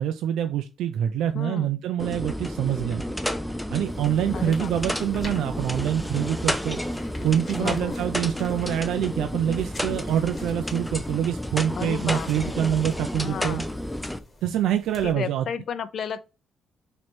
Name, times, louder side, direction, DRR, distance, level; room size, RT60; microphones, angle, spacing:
voice 1, 0.0-3.0 3.7-6.8 7.2-13.6 14.4-15.4, right 10 dB, 85° right, 0.3 m, -26 dB
voice 2, 1.3-1.7 4.3-4.9 7.6-8.0 11.8-12.6 13.2-13.7 15.0-16.2, left 7 dB, 60° left, 0.4 m, -33 dB
sound 1, 2.0-14.2, equal, 5° left, 0.4 m, -31 dB
sound 2, 3.8-15.1, left 2 dB, 30° left, 1.1 m, -46 dB
3.1 x 3.0 x 4.2 m
cardioid pair, 90°, 0 cm